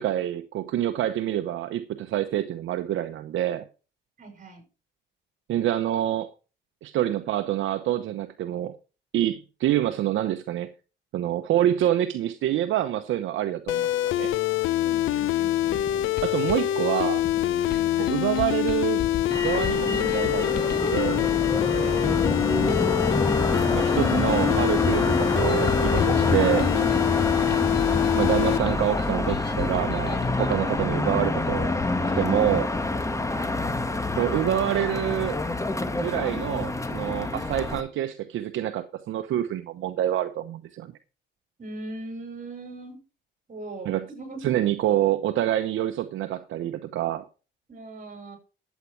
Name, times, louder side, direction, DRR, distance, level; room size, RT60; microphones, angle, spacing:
voice 1, 0.0-3.7 5.5-6.3 6.8-8.7 9.1-10.7 11.1-13.9 14.2-14.3 16.2-17.2 18.1-19.1 19.4-21.2 23.7-26.7 28.1-31.7 32.0-32.7 34.2-35.4 35.9-40.9 43.9-44.0 44.4-47.3, right 12 dB, 80° right, 0.9 m, -26 dB
voice 2, 4.2-4.6 14.8-15.8 17.7-18.2 21.6-22.3 27.1-27.5 33.1-33.6 41.6-43.0 43.5-44.4 47.7-48.4, right 3 dB, 40° right, 6.2 m, -40 dB
sound 1, 13.7-28.6, left 13 dB, 85° left, 0.7 m, -25 dB
sound 2, 15.5-32.5, left 8 dB, 55° left, 1.4 m, -38 dB
Motor vehicle (road), 19.3-37.8, left 2 dB, 15° left, 1.6 m, -26 dB
13.0 x 8.3 x 4.7 m
cardioid pair, 90°, 20 cm